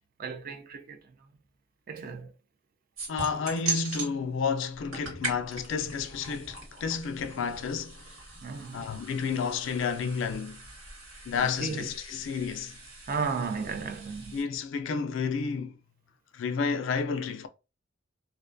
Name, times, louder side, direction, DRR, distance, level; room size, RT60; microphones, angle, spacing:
voice 1, 0.2-1.0 1.9-2.3 8.4-8.8 11.3-11.9 13.1-14.4, right 5 dB, 45° right, 0.4 m, -34 dB
sound 1, 3.0-4.1 4.7-14.4, right 3 dB, 80° right, 1.5 m, -40 dB
voice 2, 3.1-8.2 8.7-10.6 11.3-12.7 14.3-15.8 16.3-17.5, left 5 dB, 65° left, 0.3 m, -31 dB
2.5 x 2.2 x 2.5 m
head